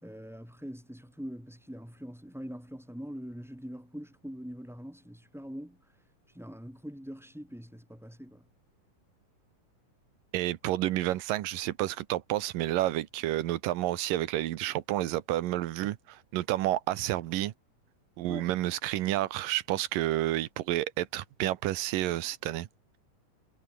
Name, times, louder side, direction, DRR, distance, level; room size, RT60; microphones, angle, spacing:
voice 1, 0.0-5.8 6.3-8.4 18.3-18.5, equal, ahead, 3.1 m, -43 dB
voice 2, 10.3-17.5 18.2-22.7, right 15 dB, 90° right, 2.7 m, -30 dB
omnidirectional pair, 3.8 m